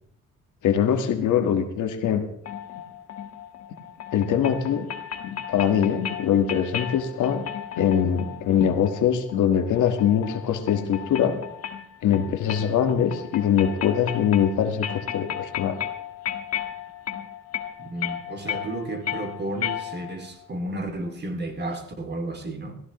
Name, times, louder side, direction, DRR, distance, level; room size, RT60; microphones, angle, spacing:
voice 1, 0.6-2.2 4.1-4.9 5.2-7.4 7.7-11.4 12.0-15.8, left 8 dB, 75° left, 1.6 m, -23 dB
sound 1, 2.5-20.3, left 10 dB, 55° left, 1.6 m, -35 dB
voice 2, 17.8-22.7, right 2 dB, 35° right, 2.5 m, -32 dB
17.5 x 15.5 x 3.1 m
cardioid pair, 90°, 30 cm